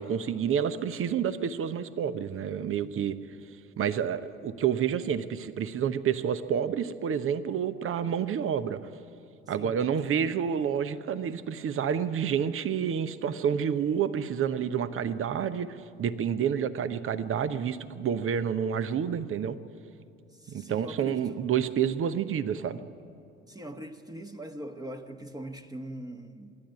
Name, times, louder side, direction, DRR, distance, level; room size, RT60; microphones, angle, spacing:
voice 1, 0.0-3.2 3.8-8.8 9.5-19.6 20.5-22.8, right 8 dB, 40° right, 1.0 m, -29 dB
voice 2, 9.6-10.4 20.3-21.4 23.5-26.6, right 1 dB, 10° right, 1.3 m, -42 dB
26.0 x 11.5 x 9.8 m
figure-of-eight pair, 55°, 33 cm